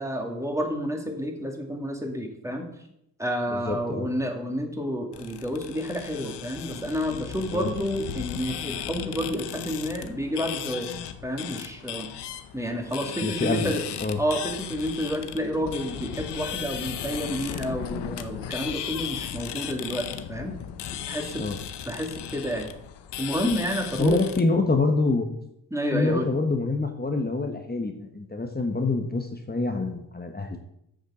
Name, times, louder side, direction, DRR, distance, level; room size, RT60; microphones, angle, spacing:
voice 1, 0.0-2.7 3.2-10.9 11.2-12.1 12.5-13.8 14.2-20.5 21.1-21.4 21.9-22.7 23.2-24.2 25.7-26.3, equal, 5° right, 2 dB, 2.4 m, -30 dB
voice 2, 3.5-4.1 7.5-7.7 13.2-13.7 14.0-14.2 21.4-21.6 24.0-25.3 25.9-30.6, left 3 dB, 25° left, 4 dB, 1.3 m, -26 dB
sound 1, 5.1-24.4, left 9 dB, 85° left, 0.8 m, -36 dB
8.2 x 6.5 x 6.3 m, 0.78 s
cardioid pair, 60°, 40 cm